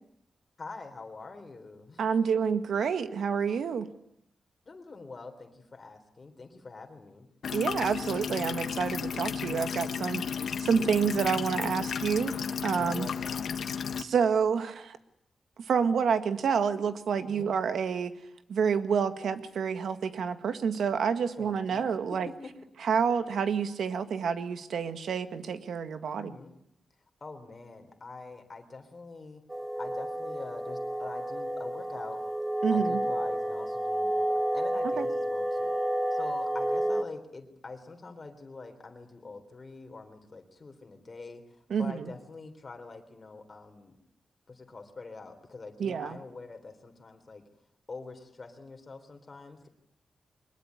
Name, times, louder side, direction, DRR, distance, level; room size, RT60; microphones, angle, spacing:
voice 1, 0.6-2.3 4.7-7.3 12.7-13.5 17.2-17.5 21.4-22.5 26.1-26.5 27.2-29.4 29.8-32.2 32.7-35.8 36.1-41.4 41.8-44.0 44.5-47.4 47.9-49.7, left 3 dB, 30° left, 5 dB, 3.7 m, -45 dB
voice 2, 2.0-3.9 7.5-13.1 14.0-15.0 15.6-18.1 18.5-22.3 22.8-26.4 32.6-33.0 35.0-35.1 41.7-42.1 45.8-46.2, right 6 dB, 80° right, 10 dB, 1.8 m, -28 dB
sound 1, 7.4-14.0, left 7 dB, 70° left, 1.4 m, -33 dB
sound 2, 29.5-37.0, right 1 dB, 15° right, 1.2 m, -30 dB
23.0 x 21.5 x 9.8 m, 0.74 s
wide cardioid pair, 180°, 0 cm